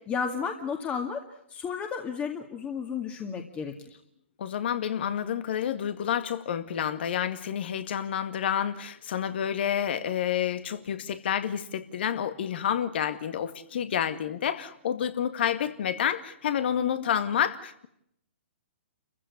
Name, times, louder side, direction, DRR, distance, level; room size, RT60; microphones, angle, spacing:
voice 1, 0.1-1.2 1.5-3.7 16.8-16.9, left 6 dB, 20° left, 4 dB, 2.1 m, -32 dB
voice 2, 4.4-17.9, left 9 dB, 55° left, 11 dB, 2.0 m, -29 dB
29.0 x 15.0 x 9.7 m, 0.77 s
figure-of-eight pair, 125°, 7 cm